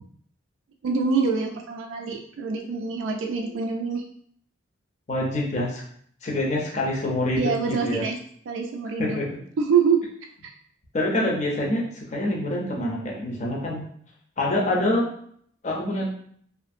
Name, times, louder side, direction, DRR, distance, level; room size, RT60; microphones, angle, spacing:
voice 1, 0.8-4.0 7.4-8.2 8.5-9.2 9.6-10.0 10.4-10.5, right 5 dB, 80° right, 3 dB, 0.3 m, -25 dB
voice 2, 5.1-5.8 6.2-8.0 9.0-9.4 10.9-13.8 14.4-15.1 15.6-16.1, left 1 dB, 35° left, -2 dB, 0.5 m, -26 dB
2.5 x 2.4 x 2.6 m, 0.63 s
head